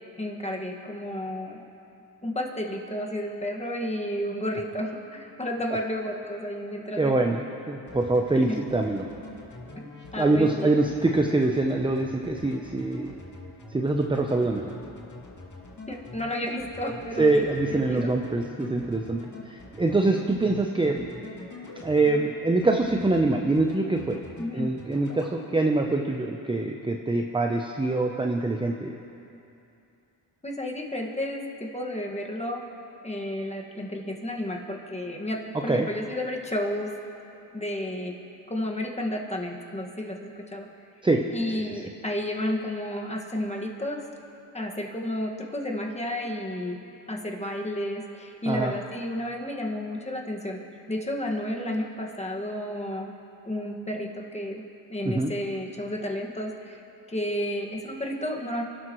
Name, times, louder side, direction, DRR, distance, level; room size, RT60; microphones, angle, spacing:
voice 1, 0.2-1.6 2.2-7.2 8.5-8.6 9.8-9.9 10.1-10.8 15.9-18.1 24.4-24.7 30.4-32.6 33.0-36.9 37.5-38.1 38.5-40.7 41.3-44.0 44.5-46.8 47.1-50.6 50.9-53.1 53.5-54.6 54.9-56.8 57.1-58.6, left 1 dB, 15° left, 0 dB, 1.9 m, -32 dB
voice 2, 7.0-9.1 10.2-13.2 13.7-14.7 17.2-21.1 21.8-24.2 24.5-28.9 35.7-35.9 41.0-41.2 48.5-48.7 55.0-55.3, right 2 dB, 10° right, 2 dB, 0.8 m, -24 dB
sound 1, 7.9-22.2 22.6-23.2 23.5-24.5 24.8-25.3, left 3 dB, 40° left, 2.5 m, -44 dB
29.0 x 12.5 x 3.2 m, 2.8 s
cardioid pair, 95°, 45 cm